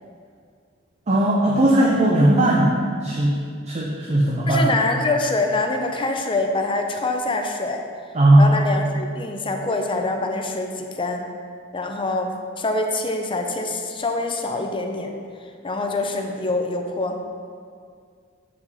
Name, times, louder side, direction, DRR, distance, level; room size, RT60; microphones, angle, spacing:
voice 1, 1.1-2.7 3.0-4.7 8.1-8.5, right 1 dB, 35° right, -3 dB, 0.7 m, -17 dB
voice 2, 4.5-7.8 8.4-11.2 11.7-15.1 15.6-17.2, left 2 dB, 25° left, 3 dB, 0.6 m, -25 dB
7.0 x 4.9 x 4.1 m, 2.1 s
head